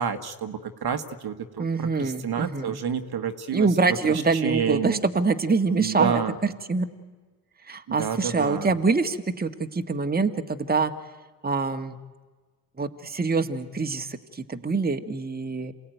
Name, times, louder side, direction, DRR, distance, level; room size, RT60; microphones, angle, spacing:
voice 1, 0.0-3.7 4.1-5.0 5.7-6.3 7.9-8.7, right 7 dB, 50° right, 8 dB, 1.7 m, -29 dB
voice 2, 1.6-2.8 3.5-6.9 7.7-10.9 11.4-12.0 12.8-15.7, right 4 dB, 20° right, 7 dB, 1.8 m, -25 dB
28.0 x 17.5 x 9.3 m, 1.3 s
hypercardioid pair, 55°, 50 cm